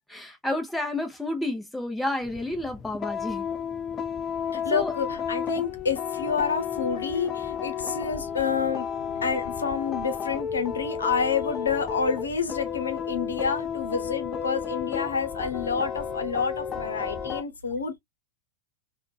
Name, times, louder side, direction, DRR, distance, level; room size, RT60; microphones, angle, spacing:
voice 1, 0.1-3.4 4.7-4.9, left 1 dB, 5° left, 0.9 m, -30 dB
sound 1, 2.2-17.4, left 7 dB, 25° left, 0.4 m, -32 dB
voice 2, 4.5-8.9 9.2-18.0, left 5 dB, 70° left, 0.8 m, -28 dB
3.6 x 2.4 x 2.3 m
figure-of-eight pair, 90°, 0 cm